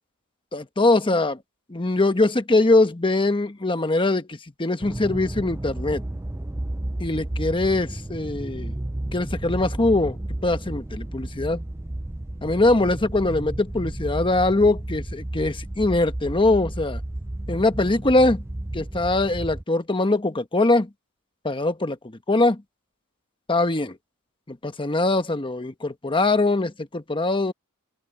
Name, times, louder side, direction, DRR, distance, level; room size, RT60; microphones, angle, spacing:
voice 1, 0.5-1.4 1.7-6.0 7.0-8.7 9.1-10.2 10.4-11.6 12.4-17.0 17.5-18.4 18.7-20.9 21.4-22.0 22.3-22.6 23.5-24.0 24.5-27.5, left 2 dB, 25° left, 1.1 m, -22 dB
sound 1, 4.8-19.6, right 1 dB, 10° right, 0.5 m, -32 dB
open air
head